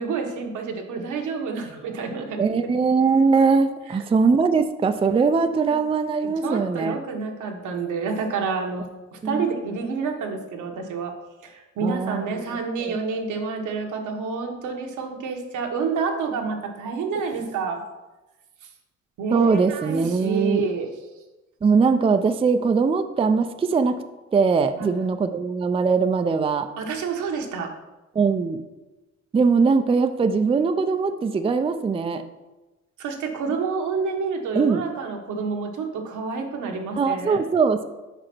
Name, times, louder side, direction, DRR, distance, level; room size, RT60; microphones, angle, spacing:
voice 1, 0.0-2.7 3.9-4.0 5.6-5.8 6.2-11.1 11.4-17.8 19.2-20.9 24.8-24.9 26.8-27.7 33.0-37.4, right 5 dB, 80° right, 3 dB, 1.2 m, -29 dB
voice 2, 2.4-7.0 9.2-9.5 11.8-13.0 19.3-20.6 21.6-24.0 24.3-26.7 28.2-28.6 29.3-32.2 34.5-34.8 36.9-37.8, right 5 dB, 20° right, 8 dB, 0.4 m, -21 dB
5.1 x 4.9 x 5.9 m, 1.1 s
cardioid pair, 90°, 30 cm